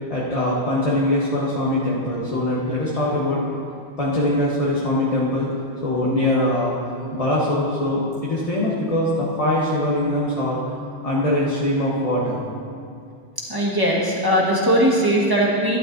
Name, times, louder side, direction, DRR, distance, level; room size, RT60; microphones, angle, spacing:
voice 1, 0.1-3.4 4.0-5.5 5.8-6.7 7.1-10.6 11.0-12.4, left 1 dB, 35° left, -6 dB, 1.3 m, -22 dB
voice 2, 13.4-15.8, equal, 20° right, -4 dB, 1.5 m, -19 dB
12.0 x 11.5 x 2.7 m, 2.4 s
omnidirectional pair, 1.1 m